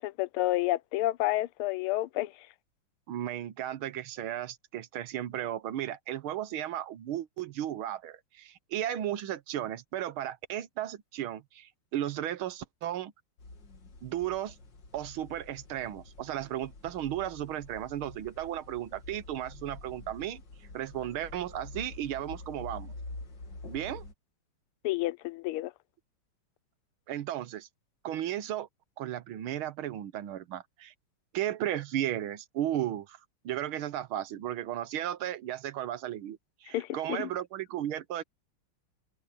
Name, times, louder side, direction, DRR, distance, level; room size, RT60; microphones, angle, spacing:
voice 1, 0.0-2.3 24.8-25.7 36.7-37.3, left 16 dB, 90° left, 1.5 m, -30 dB
voice 2, 3.1-13.1 14.0-14.6 14.9-20.4 20.7-22.9 23.7-24.0 27.1-27.7 28.0-28.7 29.0-30.9 31.3-33.2 33.4-38.2, right 12 dB, 75° right, 1.8 m, -35 dB
sound 1, 13.4-24.1, left 2 dB, 55° left, 2.8 m, -47 dB
omnidirectional pair, 2.3 m